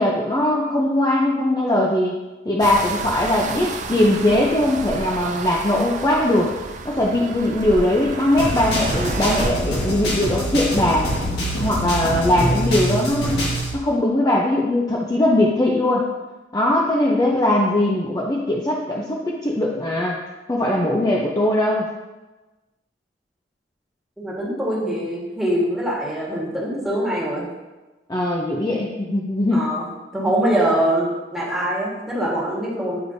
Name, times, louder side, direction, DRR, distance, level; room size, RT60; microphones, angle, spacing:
voice 1, 0.0-2.1 2.5-6.5 6.8-11.1 11.6-13.4 13.7-16.1 16.5-20.2 20.5-21.9 28.1-29.7, left 1 dB, 20° left, -3 dB, 0.5 m, -20 dB
sound 1, 2.6-9.5, right 3 dB, 45° right, 0.5 m, -31 dB
sound 2, 8.4-13.7, equal, 70° left, 1.7 m, -24 dB
voice 2, 24.2-27.5 29.5-29.8 30.1-33.0, right 1 dB, ahead, -6 dB, 1.5 m, -23 dB
8.7 x 4.8 x 2.7 m, 1.2 s
head